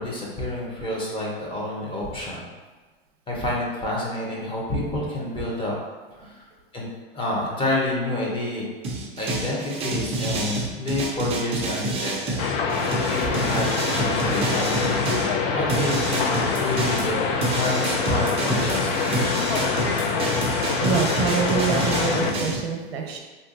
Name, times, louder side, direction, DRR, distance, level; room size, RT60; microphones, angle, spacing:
voice 1, 0.0-2.5 3.3-5.7 6.1-6.4 6.7-6.9 7.1-8.6 9.2-12.4 12.8-16.3 16.6-19.2, left 1 dB, 15° left, -4 dB, 0.7 m, -29 dB
sound 1, 8.8-15.3 15.7-22.6, right 2 dB, 20° right, 0.4 m, -28 dB
sound 2, 12.4-22.3, left 5 dB, 80° left, 0.5 m, -25 dB
voice 2, 20.8-23.2, right 6 dB, 90° right, 2 dB, 0.7 m, -26 dB
3.1 x 2.5 x 2.5 m, 1.3 s
hypercardioid pair, 115°, 30 cm